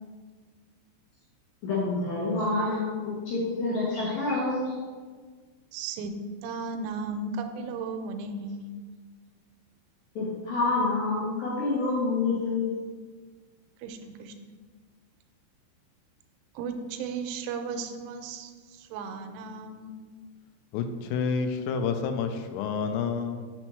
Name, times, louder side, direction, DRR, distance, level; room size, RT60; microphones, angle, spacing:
voice 1, 1.6-4.8 10.2-12.7, left 3 dB, 70° left, -7 dB, 2.2 m, -27 dB
voice 2, 5.7-6.1 6.4-8.7 13.8-14.3 16.6-20.0, right 4 dB, 85° right, 6 dB, 3.1 m, -35 dB
voice 3, 20.7-23.4, left 5 dB, 90° left, 7 dB, 3.2 m, -29 dB
7.4 x 6.2 x 3.1 m, 1.5 s
omnidirectional pair, 5.7 m